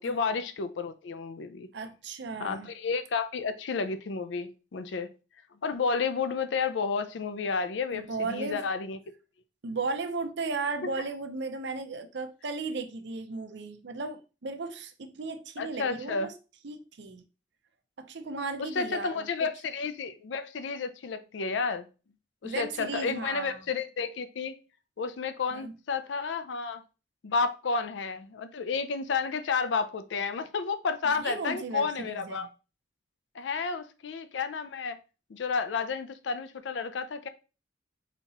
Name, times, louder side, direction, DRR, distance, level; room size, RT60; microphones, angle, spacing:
voice 1, 0.0-1.7 2.4-5.1 5.6-9.0 15.6-16.3 18.6-21.9 22.4-24.6 25.0-26.8 27.2-32.5 33.3-35.0 35.3-37.3, left 5 dB, 70° left, 0.4 m, -31 dB
voice 2, 1.7-2.7 7.9-8.6 9.6-16.3 16.6-17.2 18.0-19.5 22.4-23.6 25.5-25.8 31.2-32.5, right 3 dB, 65° right, 0.6 m, -35 dB
4.1 x 2.9 x 4.1 m
head